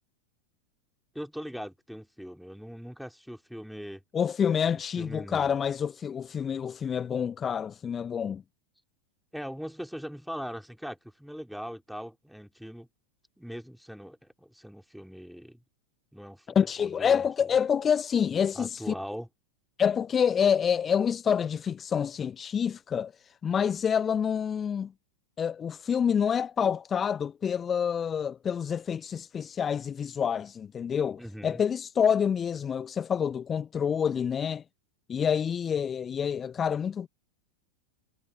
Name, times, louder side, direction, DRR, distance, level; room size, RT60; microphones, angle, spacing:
voice 1, 1.1-4.0 5.0-5.6 9.3-12.9 13.4-15.6 16.1-17.5 18.6-19.3 31.2-31.6, equal, ahead, 3.5 m, -41 dB
voice 2, 4.1-8.4 16.5-18.9 19.8-24.9 25.4-34.6 35.1-37.1, left 7 dB, 20° left, 1.0 m, -27 dB
figure-of-eight pair, 90°, 0 cm